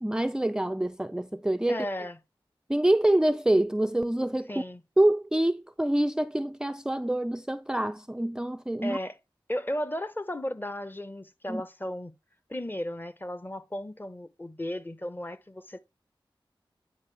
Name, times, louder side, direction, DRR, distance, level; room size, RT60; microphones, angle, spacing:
voice 1, 0.0-1.9 2.7-4.5 5.0-9.0 11.5-11.6, right 1 dB, 10° right, 0.4 m, -26 dB
voice 2, 1.7-2.2 4.5-4.8 8.8-9.2 9.5-12.1 12.5-15.8, left 1 dB, 20° left, 0.9 m, -35 dB
9.6 x 4.5 x 3.3 m
cardioid pair, 40°, 9 cm